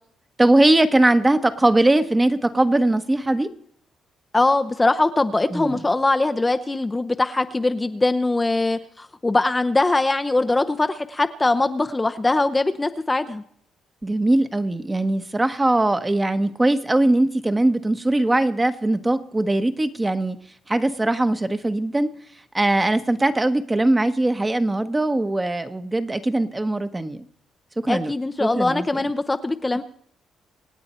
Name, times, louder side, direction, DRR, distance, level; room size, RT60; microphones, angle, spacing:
voice 1, 0.4-3.5 5.5-5.8 14.0-20.4 20.7-22.1 22.5-27.3 27.8-28.1 28.4-28.9, right 2 dB, 15° right, 9 dB, 1.1 m, -20 dB
voice 2, 4.3-13.4 27.9-29.8, left 2 dB, 20° left, 9 dB, 0.7 m, -22 dB
26.0 x 8.7 x 4.4 m, 0.65 s
cardioid pair, 90°, 0 cm